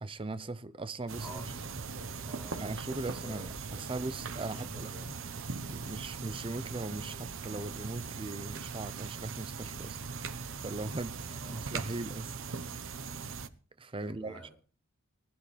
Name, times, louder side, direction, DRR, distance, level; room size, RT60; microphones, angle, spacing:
voice 1, 0.0-1.5 2.6-4.9 5.6-10.0 10.6-12.4 13.8-14.5, right 2 dB, 25° right, 0.6 m, -39 dB
voice 2, 1.1-3.5 4.5-5.1 11.3-11.7 14.0-14.5, equal, 5° left, 6.1 m, -50 dB
sound 1, 1.1-13.5, right 5 dB, 60° right, 0.9 m, -40 dB
19.5 x 13.0 x 3.4 m
head